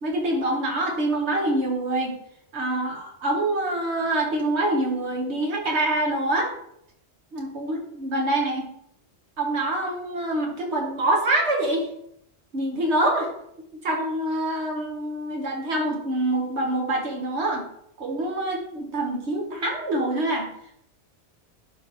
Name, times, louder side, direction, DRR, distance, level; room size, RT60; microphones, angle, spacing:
voice 1, 0.0-2.2 2.5-6.5 7.3-8.7 9.4-11.9 12.5-13.3 13.8-17.7 18.0-20.5, right 1 dB, 80° right, 0 dB, 1.7 m, -25 dB
11.5 x 3.9 x 3.1 m, 0.74 s
omnidirectional pair, 1.1 m